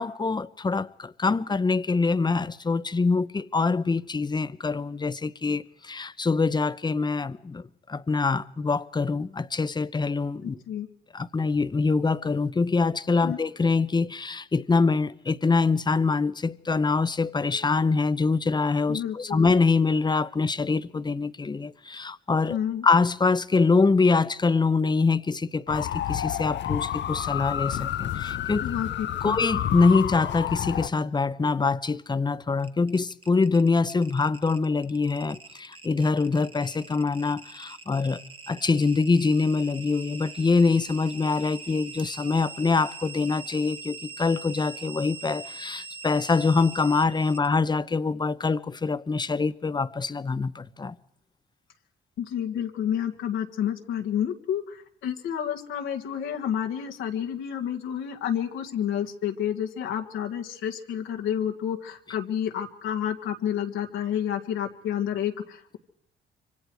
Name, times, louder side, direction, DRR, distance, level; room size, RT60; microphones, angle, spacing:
voice 1, 0.0-10.6 11.1-22.6 22.8-28.6 29.2-38.2 38.5-51.0, left 4 dB, 20° left, 0.8 m, -24 dB
voice 2, 10.4-10.9 13.2-13.4 18.9-19.5 22.5-22.9 28.6-29.4 52.2-65.8, left 9 dB, 85° left, 2.0 m, -30 dB
sound 1, 25.7-30.9, left 11 dB, 65° left, 0.8 m, -30 dB
sound 2, 32.6-47.5, right 4 dB, 25° right, 1.4 m, -43 dB
25.5 x 24.5 x 4.8 m
cardioid pair, 90°, 20 cm